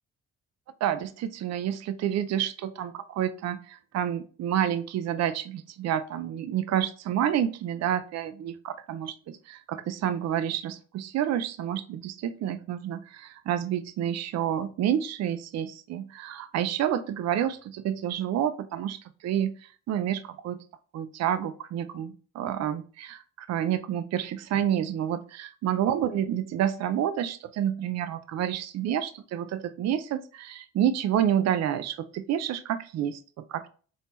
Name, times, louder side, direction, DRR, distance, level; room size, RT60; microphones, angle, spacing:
voice 1, 0.8-20.6 20.9-33.7, right 10 dB, 60° right, 12 dB, 0.5 m, -29 dB
4.3 x 3.5 x 3.0 m, 0.40 s
cardioid pair, 90°, 30 cm